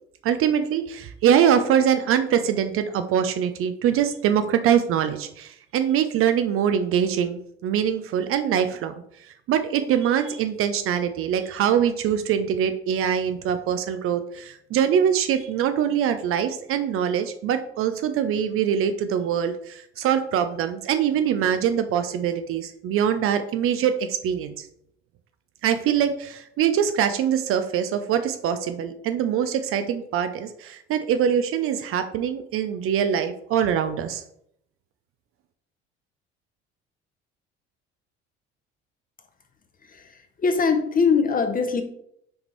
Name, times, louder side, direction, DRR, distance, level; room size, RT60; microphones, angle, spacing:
voice 1, 0.2-8.9 9.5-24.7 25.6-34.2, right 9 dB, 40° right, 9 dB, 0.5 m, -23 dB
voice 2, 39.8-41.8, left 5 dB, 25° left, 6 dB, 1.0 m, -22 dB
6.1 x 5.0 x 3.2 m, 0.72 s
figure-of-eight pair, 55°, 34 cm